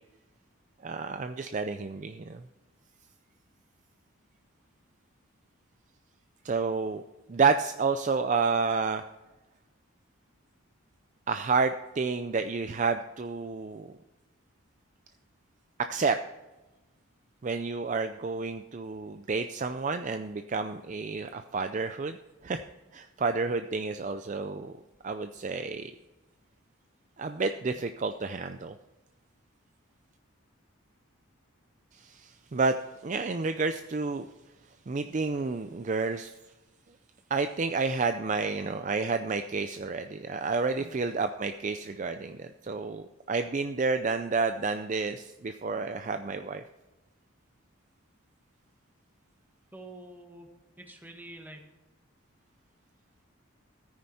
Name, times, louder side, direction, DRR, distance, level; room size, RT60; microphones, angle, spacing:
voice 1, 0.8-2.4 6.4-7.0 7.3-9.0 11.3-13.9 15.8-16.2 17.4-22.2 22.4-22.6 22.9-24.7 25.0-25.9 27.2-28.7 31.9-34.3 34.9-36.3 37.3-46.6, right 4 dB, 35° right, 9 dB, 0.4 m, -30 dB
voice 2, 49.7-50.5 50.8-51.7, right 1 dB, 10° right, 3 dB, 1.5 m, -47 dB
14.0 x 9.6 x 4.2 m, 1.1 s
head